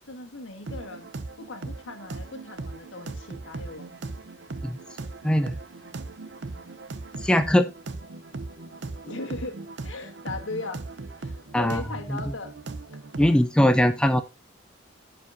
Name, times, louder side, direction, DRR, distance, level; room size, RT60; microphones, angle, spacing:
voice 1, 0.1-1.1 1.4-3.9 9.0-10.8 11.2-12.5 12.9-13.3, left 2 dB, 85° left, 5 dB, 1.6 m, -38 dB
sound 1, 0.7-13.5, right 3 dB, 65° right, 0.6 m, -38 dB
voice 2, 7.2-7.6 11.5-11.8 12.1-12.2 13.2-14.2, left 1 dB, 5° left, 8 dB, 0.4 m, -20 dB
15.0 x 5.0 x 2.6 m, 0.25 s
head